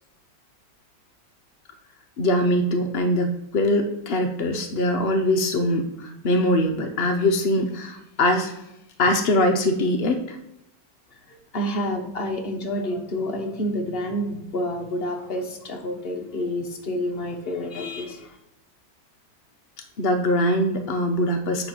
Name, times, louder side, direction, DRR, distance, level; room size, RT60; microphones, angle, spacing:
voice 1, 2.2-8.6 9.0-10.4 20.0-21.7, left 1 dB, 85° left, 5 dB, 0.5 m, -22 dB
voice 2, 11.3-18.4, left 1 dB, 40° left, 2 dB, 1.0 m, -29 dB
8.2 x 3.3 x 5.9 m, 0.84 s
omnidirectional pair, 2.0 m